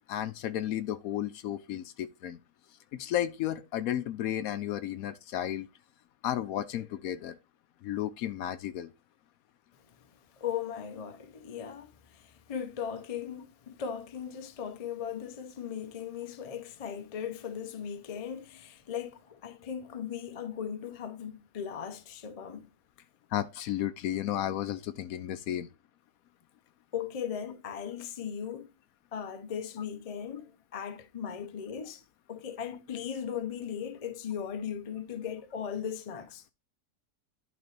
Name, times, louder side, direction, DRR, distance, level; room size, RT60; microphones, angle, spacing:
voice 1, 0.0-2.4 2.9-5.7 6.2-7.4 7.8-8.9 23.3-25.7, left 11 dB, 70° left, 0.9 m, -33 dB
voice 2, 10.4-22.7 26.9-28.7 29.1-32.0 32.3-36.4, left 8 dB, 40° left, 0.5 m, -38 dB
11.0 x 4.0 x 3.2 m
omnidirectional pair, 1.7 m